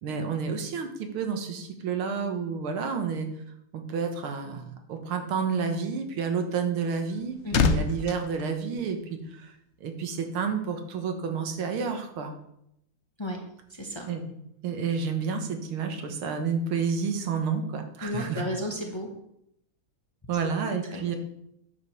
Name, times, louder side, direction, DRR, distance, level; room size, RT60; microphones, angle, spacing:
voice 1, 0.0-3.3 3.7-9.5 9.8-12.3 14.0-14.2 14.6-18.4 20.3-21.2, right 5 dB, 90° right, 5 dB, 2.2 m, -30 dB
sound 1, 6.8-9.5 9.7-10.0, left 5 dB, 60° left, 0.7 m, -29 dB
voice 2, 7.4-7.8 13.2-13.4 13.7-14.0 18.0-19.1 20.9-21.1, left 1 dB, 15° left, 1 dB, 1.0 m, -33 dB
9.5 x 5.3 x 6.9 m, 0.78 s
omnidirectional pair, 2.3 m